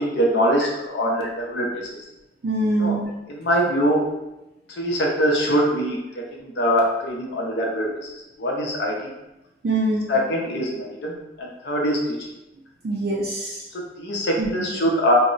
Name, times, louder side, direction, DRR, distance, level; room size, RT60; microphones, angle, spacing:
voice 1, 0.0-1.8 2.8-3.0 3.3-4.0 4.7-7.9 8.4-9.0 10.1-12.2 13.7-15.1, equal, 65° left, -1 dB, 0.6 m, -23 dB
voice 2, 2.4-3.1 9.6-10.1 12.8-13.6 14.4-14.7, right 2 dB, 55° right, -4 dB, 0.4 m, -24 dB
2.1 x 2.0 x 3.7 m, 0.95 s
head